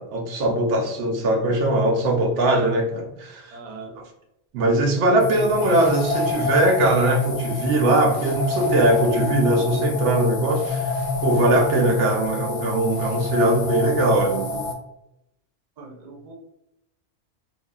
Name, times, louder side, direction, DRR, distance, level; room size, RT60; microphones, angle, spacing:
voice 1, 0.0-3.5 4.5-10.9 11.2-14.7, right 1 dB, 90° right, 2 dB, 0.9 m, -21 dB
voice 2, 3.5-4.0 15.8-16.3, right 4 dB, 50° right, 1 dB, 0.6 m, -40 dB
sound 1, 5.2-14.7, left 3 dB, 60° left, 0.5 m, -27 dB
2.6 x 2.3 x 2.2 m, 0.85 s
omnidirectional pair, 1.2 m